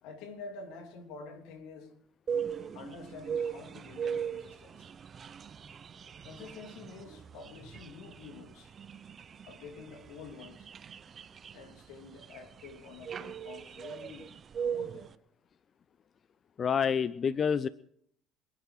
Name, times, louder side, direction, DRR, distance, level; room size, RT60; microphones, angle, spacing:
voice 1, 0.0-1.9 2.7-4.9 6.2-8.7 9.5-10.7 11.5-14.3 14.5-15.1, left 4 dB, 80° left, 3.2 m, -48 dB
sound 1, 2.3-15.1, right 7 dB, 40° right, 0.8 m, -39 dB
voice 2, 16.6-17.7, left 7 dB, 40° left, 0.5 m, -28 dB
27.5 x 10.0 x 4.9 m
supercardioid pair, 90°, 0 cm